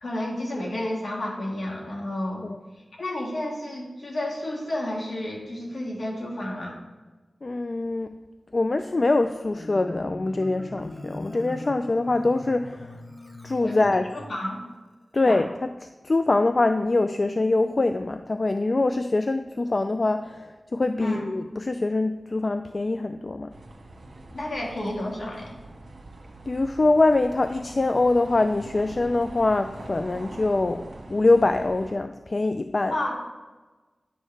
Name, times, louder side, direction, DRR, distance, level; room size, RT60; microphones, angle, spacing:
voice 1, 0.0-2.4 3.0-6.8 13.6-13.8 14.1-14.6 15.2-15.4 21.0-21.3 24.3-25.5 32.9-33.1, left 1 dB, 70° left, -2 dB, 1.8 m, -31 dB
voice 2, 7.4-8.1 8.5-13.0 13.4-14.1 15.1-15.7 16.0-23.5 26.5-30.8 31.1-32.9, left 2 dB, 45° left, 8 dB, 0.3 m, -24 dB
Marimba xylophone, 9.2-14.3, left 1 dB, 25° left, 0.8 m, -41 dB
sound 1, 23.5-31.9, right 2 dB, 75° right, 1.3 m, -43 dB
10.0 x 6.4 x 3.3 m, 1.2 s
wide cardioid pair, 65°, 0 cm